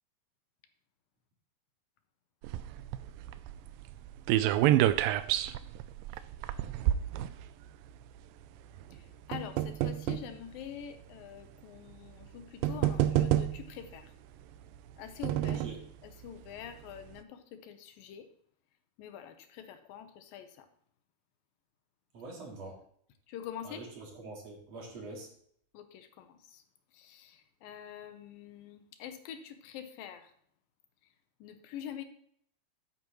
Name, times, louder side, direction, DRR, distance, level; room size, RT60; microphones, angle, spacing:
sound 1, 2.4-7.9 8.8-10.3 11.1-11.2 12.2-12.3 12.6-13.8 14.7-15.8 16.3-16.4 16.6-16.7, right 13 dB, 90° right, 2.3 m, -29 dB
voice 1, 8.9-14.1 15.0-15.8 16.0-18.3 19.0-20.7 23.3-23.9 25.7-26.6 26.9-30.3 31.4-32.0, left 9 dB, 85° left, 8 dB, 2.7 m, -45 dB
voice 2, 22.1-22.8 23.6-25.3, right 3 dB, 50° right, -1 dB, 3.2 m, -44 dB
12.0 x 9.3 x 3.1 m, 0.63 s
omnidirectional pair, 4.0 m